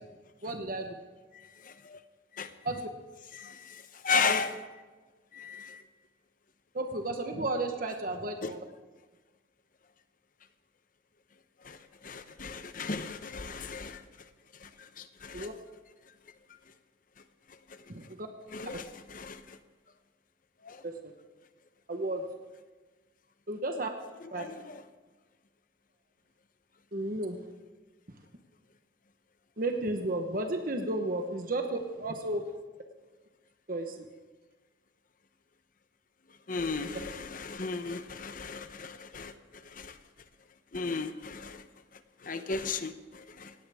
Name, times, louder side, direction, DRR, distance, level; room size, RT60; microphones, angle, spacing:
voice 1, 0.4-0.9 2.6-2.8 4.2-4.4 6.7-8.6 15.3-15.5 17.9-18.3 18.7-18.8 20.8-21.1 21.9-22.2 23.5-23.9 24.3-24.4 26.9-27.4 29.6-32.4 33.7-34.1, right 2 dB, 50° right, 5 dB, 1.1 m, -33 dB
voice 2, 1.3-2.0 2.3-2.5 3.3-4.5 5.3-5.8 8.4-8.5 11.6-11.8 12.0-14.0 14.6-15.5 18.5-19.6 20.6-20.8 24.3-24.8 36.5-39.3 39.6-40.0 40.7-41.6 42.2-43.5, left 5 dB, 45° left, 10 dB, 0.8 m, -35 dB
18.0 x 17.0 x 3.6 m, 1.3 s
head